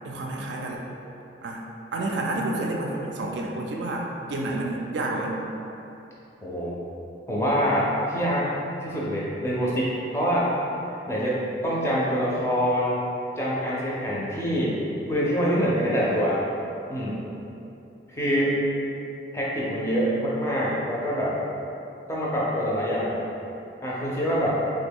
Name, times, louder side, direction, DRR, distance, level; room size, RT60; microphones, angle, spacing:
voice 1, 0.0-0.8 1.4-1.6 1.9-5.4, right 2 dB, 70° right, -1 dB, 0.4 m, -29 dB
voice 2, 6.4-6.8 7.3-8.5 8.8-10.5 11.1-13.0 13.4-14.8 15.1-16.4 16.9-17.2 18.1-18.5 19.3-21.3 22.1-23.2 23.8-24.5, equal, 15° left, -7 dB, 0.5 m, -25 dB
3.2 x 2.2 x 3.5 m, 2.8 s
head